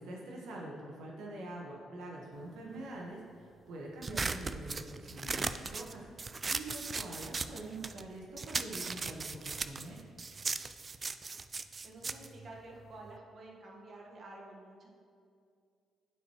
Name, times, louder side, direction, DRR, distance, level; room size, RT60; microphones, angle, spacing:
voice 1, 0.0-10.0, right 1 dB, 85° right, -3 dB, 1.1 m, -45 dB
sound 1, 4.0-8.1 8.4-13.2, right 4 dB, 35° right, 0.3 m, -38 dB
voice 2, 11.8-14.9, right 2 dB, 50° right, -2 dB, 1.3 m, -50 dB
11.5 x 4.6 x 3.0 m, 2.3 s
cardioid pair, 90°, 0 cm